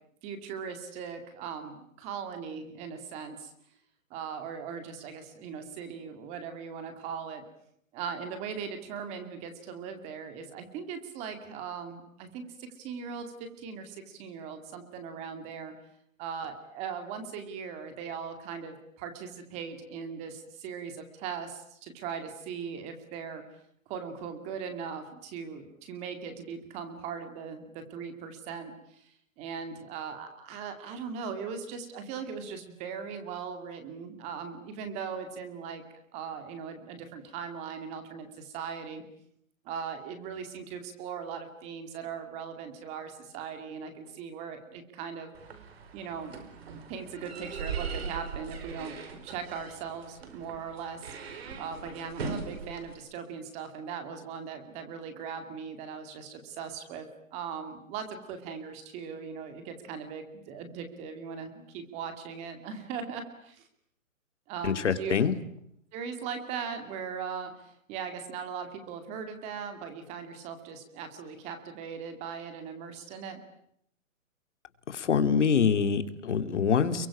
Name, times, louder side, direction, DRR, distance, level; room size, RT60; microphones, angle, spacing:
voice 1, 0.2-3.5 4.1-7.4 7.9-15.7 16.2-23.4 23.9-35.8 36.1-39.0 39.6-45.3 45.9-46.5 46.9-49.0 49.2-63.7 64.5-65.1 65.9-73.4, right 6 dB, 15° right, 8 dB, 2.4 m, -39 dB
sound 1, 45.3-52.9, right 5 dB, 50° right, 5.2 m, -40 dB
voice 2, 64.6-65.3 74.9-77.1, left 6 dB, 60° left, 10 dB, 2.7 m, -25 dB
28.5 x 23.5 x 8.6 m, 0.71 s
hypercardioid pair, 165°, 41 cm